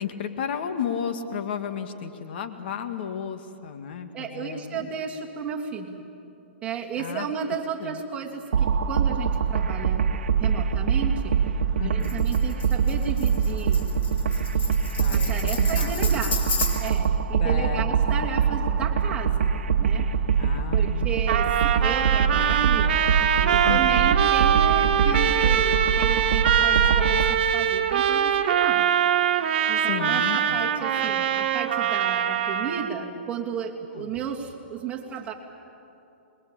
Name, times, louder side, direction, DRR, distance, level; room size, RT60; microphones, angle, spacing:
voice 1, 0.0-4.9 7.0-7.3 7.8-8.0 11.8-12.2 15.0-16.3 17.4-18.3 20.4-21.1 23.6-24.1 29.8-30.6 31.0-31.1 34.0-34.1, left 7 dB, 60° left, 7 dB, 1.9 m, -33 dB
voice 2, 4.1-6.0 6.6-10.1 10.4-11.4 11.8-13.9 15.1-16.4 16.8-20.4 20.7-23.0 23.3-28.9 29.7-35.3, right 7 dB, 20° right, -1 dB, 2.9 m, -34 dB
sound 1, 8.5-27.3, right 6 dB, 75° right, 1.2 m, -24 dB
Tambourine, 12.0-17.1, left 5 dB, 75° left, 5.0 m, -33 dB
Trumpet, 21.3-32.9, right 9 dB, 55° right, 1.8 m, -23 dB
27.5 x 22.0 x 8.8 m, 2.9 s
hypercardioid pair, 135°, 6 cm